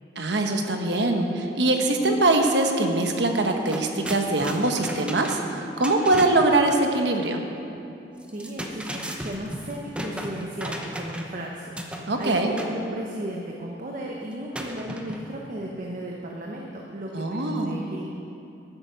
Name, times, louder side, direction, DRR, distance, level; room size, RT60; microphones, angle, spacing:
voice 1, 0.2-7.4 12.1-12.5 17.1-17.8, right 2 dB, 75° right, 4 dB, 1.2 m, -23 dB
sound 1, 3.0-3.1 3.4-6.5 8.2-11.4 11.8-12.8 14.5-15.4, equal, 5° right, 0.9 m, -35 dB
voice 2, 8.3-18.1, right 1 dB, 50° right, -1 dB, 1.0 m, -35 dB
11.5 x 9.3 x 6.3 m, 2.8 s
head